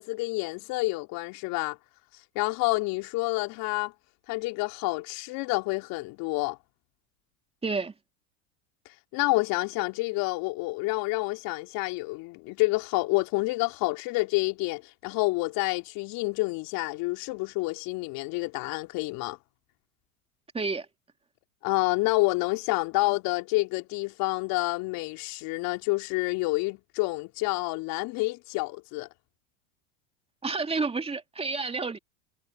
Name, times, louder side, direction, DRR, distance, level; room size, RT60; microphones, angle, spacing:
voice 1, 0.0-1.8 2.4-3.9 4.3-6.6 9.1-19.4 21.6-29.1, left 23 dB, 55° left, 3.7 m, -28 dB
voice 2, 7.6-7.9 20.5-20.9 30.4-32.0, right 4 dB, 15° right, 2.4 m, -30 dB
hypercardioid pair, 95°, 41 cm